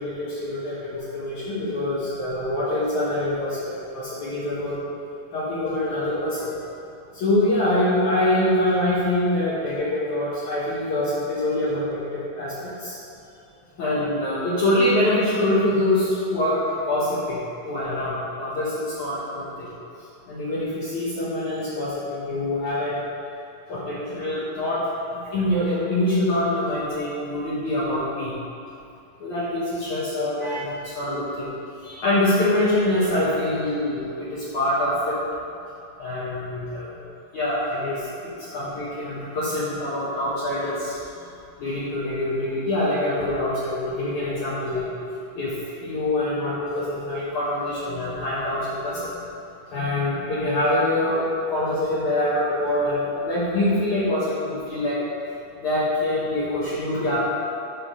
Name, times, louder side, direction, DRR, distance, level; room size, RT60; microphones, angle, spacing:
voice 1, 0.0-4.8 5.3-6.5 7.1-13.0 13.8-17.4 17.7-19.7 20.3-23.0 23.7-24.8 25.1-28.4 29.2-31.5 31.8-35.2 36.0-37.1 37.3-38.0 38.5-41.0 41.6-44.9 45.3-49.1 49.7-55.0 55.6-57.2, left 1 dB, 60° left, -9 dB, 2.2 m, -25 dB
10.5 x 3.7 x 6.2 m, 2.6 s
omnidirectional pair, 4.6 m